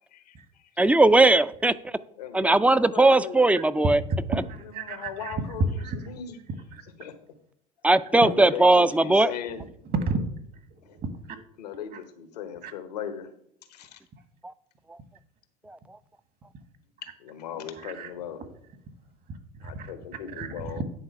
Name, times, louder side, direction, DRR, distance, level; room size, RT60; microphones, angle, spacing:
voice 1, 0.1-0.7 2.2-3.4 4.6-6.4 7.0-7.1 8.1-9.6 10.8-11.0 11.6-13.3 13.7-14.0 17.2-18.4 19.6-20.8, left 8 dB, 90° left, 9 dB, 1.0 m, -38 dB
voice 2, 0.8-1.7 2.3-4.0 7.8-9.3, right 2 dB, 5° right, 16 dB, 0.4 m, -19 dB
voice 3, 4.1-5.3 5.8-6.1 9.9-10.2 12.6-12.7 17.8-18.1 19.3-19.9 20.4-20.7, right 4 dB, 50° right, 8 dB, 1.6 m, -32 dB
9.8 x 4.0 x 5.8 m, 0.70 s
hypercardioid pair, 75°, 20 cm